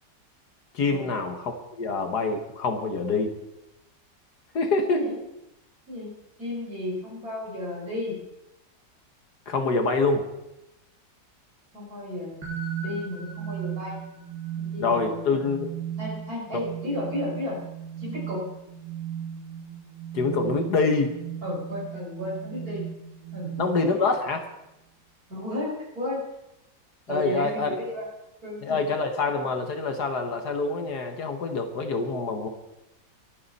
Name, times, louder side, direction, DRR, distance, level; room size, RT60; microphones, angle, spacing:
voice 1, 0.7-3.3 4.5-5.0 9.5-10.3 14.8-15.7 16.5-16.6 20.1-21.2 23.6-24.5 27.1-27.7 28.6-32.5, left 4 dB, 60° left, 6 dB, 1.8 m, -26 dB
voice 2, 5.9-8.2 11.7-12.4 12.8-14.0 14.6-15.3 16.0-17.6 18.0-18.5 21.4-22.9 23.3-23.5 25.3-26.2 27.1-28.1 28.4-28.9, left 1 dB, 50° right, -4 dB, 6.1 m, -33 dB
sound 1, 12.4-24.1, right 8 dB, 75° right, 3.3 m, -36 dB
22.5 x 9.5 x 4.2 m, 0.90 s
omnidirectional pair, 2.0 m